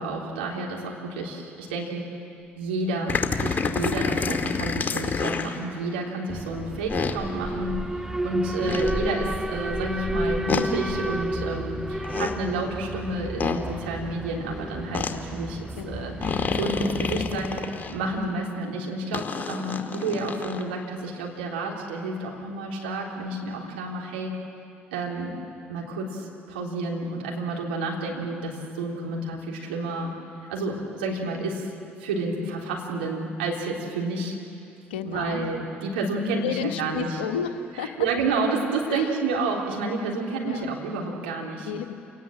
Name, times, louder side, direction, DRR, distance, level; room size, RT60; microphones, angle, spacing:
voice 1, 0.0-2.1 2.6-17.6 17.9-24.3 24.9-25.4 25.7-30.1 30.5-31.7 32.0-34.4 35.0-37.1 37.8-41.7, right 3 dB, 80° right, -1 dB, 3.6 m, -30 dB
sound 1, 3.1-5.6 6.9-7.2 8.7-8.9 10.5-10.7 11.9-12.3 13.4-13.6 14.9-15.1 16.2-17.9 19.1-20.6, left 5 dB, 35° left, 2.2 m, -28 dB
Alarm, 6.3-18.3, right 1 dB, 10° right, 0.8 m, -32 dB
voice 2, 15.8-16.2 32.4-32.5 34.9-35.5 36.4-37.9 38.9-39.2 40.4-40.6 41.6-41.9, left 8 dB, 80° left, 8 dB, 1.2 m, -32 dB
29.0 x 18.5 x 7.7 m, 2.5 s
hypercardioid pair, 55°, 6 cm